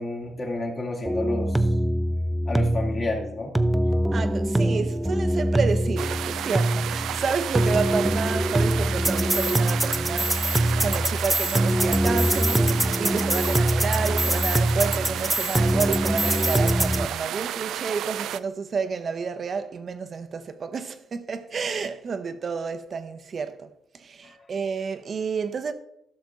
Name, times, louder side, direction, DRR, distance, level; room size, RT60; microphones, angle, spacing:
voice 1, 0.0-1.7 2.5-3.5 24.2-24.4, left 2 dB, 40° left, 2.4 m, -30 dB
sound 1, 1.1-17.1, right 1 dB, 10° right, 0.6 m, -23 dB
voice 2, 4.1-25.7, right 5 dB, 45° right, 0.9 m, -30 dB
sound 2, 6.0-18.4, right 11 dB, 80° right, 0.3 m, -32 dB
13.0 x 6.1 x 3.7 m
cardioid pair, 90°, 0 cm